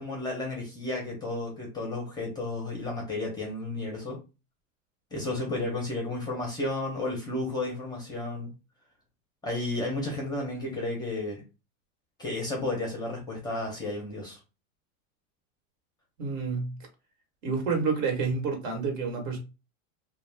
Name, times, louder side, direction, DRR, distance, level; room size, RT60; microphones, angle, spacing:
voice 1, 0.0-4.2 5.1-8.5 9.4-11.4 12.2-14.4, left 2 dB, 10° left, 0.6 m, -32 dB
voice 2, 16.2-16.8 17.4-19.4, right 4 dB, 65° right, 1.3 m, -29 dB
2.3 x 2.2 x 3.3 m
supercardioid pair, 140°, 42 cm